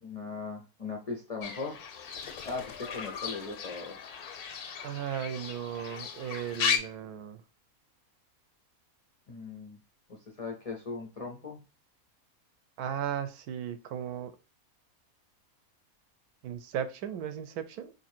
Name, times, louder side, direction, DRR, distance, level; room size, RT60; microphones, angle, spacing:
voice 1, 0.0-1.8 2.5-4.0 9.3-9.8 10.1-11.6, left 4 dB, 65° left, 0 dB, 0.3 m, -39 dB
Fowl / Bird, 1.4-6.8, left 7 dB, 85° left, 1.2 m, -36 dB
voice 2, 4.8-7.4 12.8-14.3 16.4-17.9, right 9 dB, 90° right, 10 dB, 1.1 m, -36 dB
2.9 x 2.7 x 4.2 m, 0.33 s
omnidirectional pair, 1.6 m